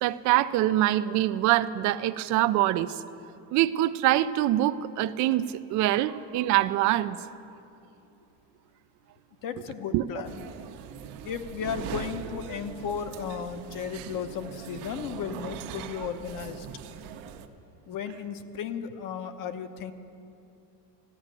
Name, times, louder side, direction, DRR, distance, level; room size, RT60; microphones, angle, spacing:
voice 1, 0.0-2.9 3.5-5.4 5.7-7.2 9.9-10.0, right 14 dB, 40° right, 12 dB, 0.4 m, -24 dB
voice 2, 9.4-10.5 11.2-16.7 17.9-19.9, left 7 dB, 40° left, 9 dB, 1.0 m, -35 dB
sound 1, 10.2-17.5, right 8 dB, 70° right, 1.2 m, -41 dB
14.5 x 10.5 x 9.0 m, 2.7 s
supercardioid pair, 135°, 49 cm